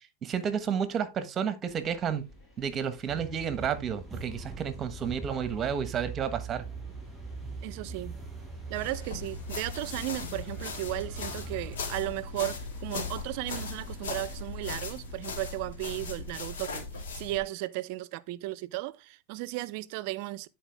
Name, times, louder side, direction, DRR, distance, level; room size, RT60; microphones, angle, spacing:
voice 1, 0.0-2.2 2.6-6.6, right 7 dB, 30° right, 1.2 m, -31 dB
sound 1, 1.7-16.4, left 2 dB, 25° left, 5.0 m, -54 dB
sound 2, 3.1-11.8, right 4 dB, 10° right, 5.7 m, -42 dB
voice 2, 7.6-8.2 8.7-20.5, right 18 dB, 60° right, 0.5 m, -35 dB
sound 3, 8.7-17.4, left 4 dB, 85° left, 1.7 m, -38 dB
10.0 x 4.5 x 3.4 m
supercardioid pair, 125°, 0 cm